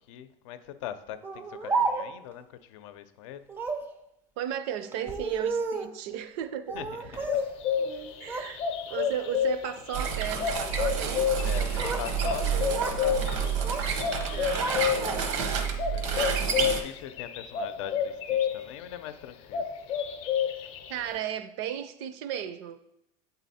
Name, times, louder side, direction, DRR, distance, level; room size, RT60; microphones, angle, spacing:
voice 1, 0.1-3.4 6.7-7.3 7.9-8.0 11.4-13.3 14.9-15.6 15.9-19.7, left 11 dB, 80° left, 11 dB, 0.6 m, -41 dB
Speech, 1.2-2.3 3.5-3.9 4.9-6.0 6.7-7.5 7.8-8.5 8.9-9.3 10.0-10.3 11.4-12.1 12.4-13.0 13.3-13.9 14.2-15.5, right 4 dB, 15° right, 0.4 m, -33 dB
voice 2, 4.4-6.8 7.0-7.3 8.2-11.6 14.3-15.6 20.9-23.0, right 10 dB, 60° right, 12 dB, 0.5 m, -35 dB
sound 1, 7.2-18.7 19.0-21.1, left 8 dB, 40° left, 0.6 m, -30 dB
sound 2, 9.9-16.8, right 6 dB, 80° right, 1.0 m, -29 dB
8.2 x 4.0 x 4.1 m, 0.80 s
cardioid pair, 175°, 16 cm